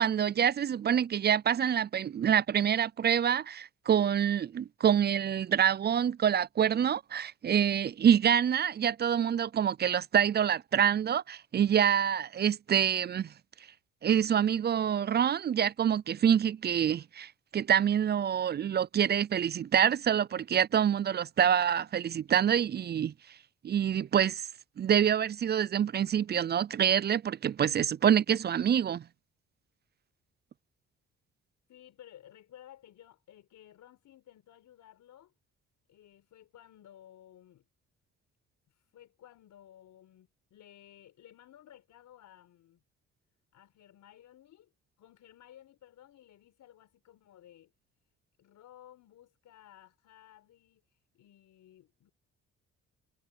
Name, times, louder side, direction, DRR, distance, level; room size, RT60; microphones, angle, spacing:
voice 1, 0.0-13.3 14.0-23.1 23.6-24.5 24.8-29.0, right 9 dB, 35° right, 0.4 m, -26 dB
voice 2, 31.7-35.3 35.9-37.6 38.7-42.8 43.5-44.7 45.0-47.7 48.4-52.1, left 11 dB, 75° left, 5.1 m, -56 dB
cardioid pair, 90°, 30 cm